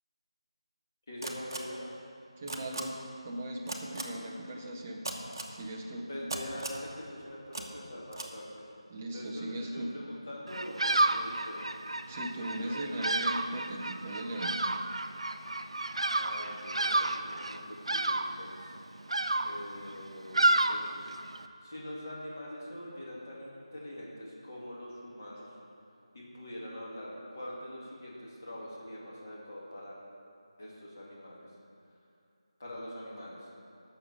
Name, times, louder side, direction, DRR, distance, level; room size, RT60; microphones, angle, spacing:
voice 1, 1.1-2.0 6.1-8.7 9.1-11.6 12.4-13.0 16.2-18.8 19.4-25.5 26.1-30.0 30.6-31.5 32.6-33.5, left 1 dB, 30° left, -5 dB, 2.2 m, -44 dB
sound 1, 1.2-1.6 2.5-2.8 3.7-4.0 5.0-5.5 6.3-6.8 7.5-7.6 8.1-8.3, right 2 dB, 40° right, 1.0 m, -37 dB
voice 2, 2.4-3.0 3.2-5.1 5.5-6.1 8.9-9.9 12.1-14.6, right 1 dB, 10° right, -1 dB, 0.5 m, -38 dB
Bird vocalization bird call bird song, 10.5-21.4, right 2 dB, 65° right, 0.6 m, -31 dB
9.8 x 6.4 x 7.2 m, 2.6 s
figure-of-eight pair, 175°, 3 cm